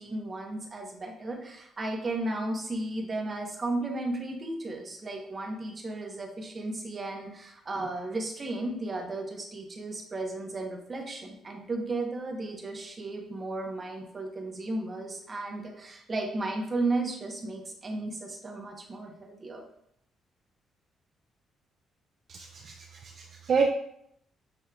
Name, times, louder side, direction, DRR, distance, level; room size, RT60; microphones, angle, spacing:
voice 1, 0.0-19.6, right 2 dB, 35° right, 1 dB, 1.0 m, -34 dB
voice 2, 22.3-23.7, right 5 dB, 55° right, 2 dB, 0.4 m, -29 dB
6.7 x 3.1 x 2.4 m, 0.74 s
cardioid pair, 90°, 0 cm